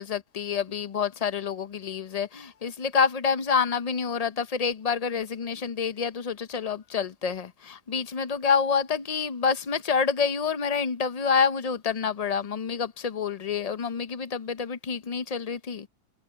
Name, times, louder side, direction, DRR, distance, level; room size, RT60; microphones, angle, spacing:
voice 1, 0.0-15.9, left 6 dB, 70° left, 0.3 m, -27 dB
omnidirectional pair, 1.7 m